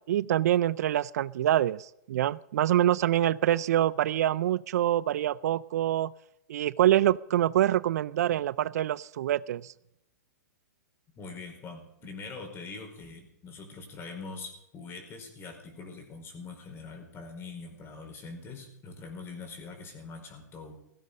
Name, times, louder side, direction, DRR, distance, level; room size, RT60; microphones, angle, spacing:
voice 1, 0.1-6.1 6.5-9.7, right 12 dB, 65° right, 20 dB, 0.5 m, -25 dB
voice 2, 11.1-20.8, left 4 dB, 25° left, 4 dB, 4.9 m, -43 dB
16.5 x 16.0 x 5.3 m, 0.80 s
hypercardioid pair, 125°, 9 cm